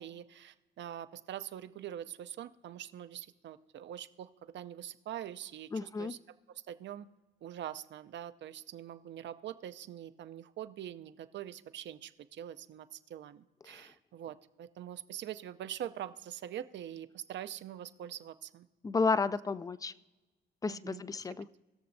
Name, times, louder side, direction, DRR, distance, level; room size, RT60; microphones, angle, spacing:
voice 1, 0.0-6.2 6.7-7.1 7.4-18.7 20.7-21.3, right 11 dB, 65° right, 12 dB, 0.6 m, -44 dB
voice 2, 5.7-6.1 13.7-13.8 18.8-19.9 20.6-21.5, left 4 dB, 20° left, 17 dB, 0.3 m, -32 dB
20.0 x 6.8 x 2.7 m, 1.2 s
cardioid pair, 90°, 20 cm